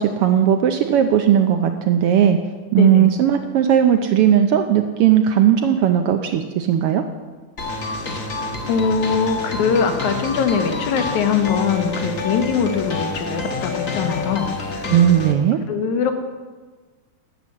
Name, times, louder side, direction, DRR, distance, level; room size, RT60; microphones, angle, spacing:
voice 1, 0.0-2.4 2.7-7.0 14.9-15.6, right 10 dB, 80° right, 7 dB, 1.3 m, -17 dB
voice 2, 2.8-3.1 8.7-14.8 15.7-16.2, left 6 dB, 90° left, 6 dB, 2.6 m, -22 dB
sound 1, 7.6-15.3, left 3 dB, 60° left, 0.8 m, -28 dB
11.5 x 7.3 x 9.3 m, 1.4 s
omnidirectional pair, 3.3 m